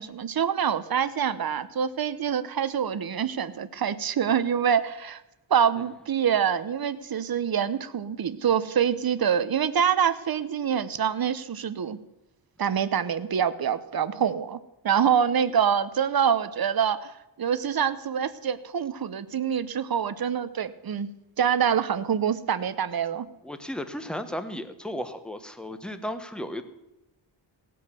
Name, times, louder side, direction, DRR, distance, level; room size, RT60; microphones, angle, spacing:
voice 1, 0.0-5.2 5.5-12.0 12.6-14.6 14.8-21.1 21.4-23.3, right 8 dB, 50° right, 14 dB, 0.9 m, -25 dB
voice 2, 23.4-26.6, left 1 dB, ahead, 9 dB, 1.0 m, -34 dB
18.0 x 8.6 x 6.9 m, 0.92 s
wide cardioid pair, 140°, 47 cm